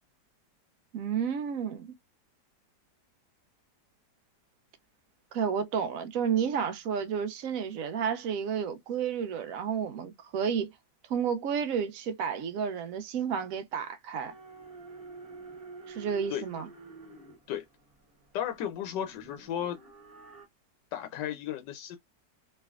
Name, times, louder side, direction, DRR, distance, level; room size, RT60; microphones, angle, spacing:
voice 1, 0.9-1.9 5.3-10.7 11.1-14.3 15.9-16.7, right 7 dB, 70° right, 0.8 m, -31 dB
sound 1, 14.1-20.5, right 3 dB, 25° right, 1.0 m, -49 dB
voice 2, 18.3-19.8 20.9-22.0, left 10 dB, 85° left, 1.2 m, -34 dB
3.2 x 2.8 x 2.3 m
omnidirectional pair, 1.8 m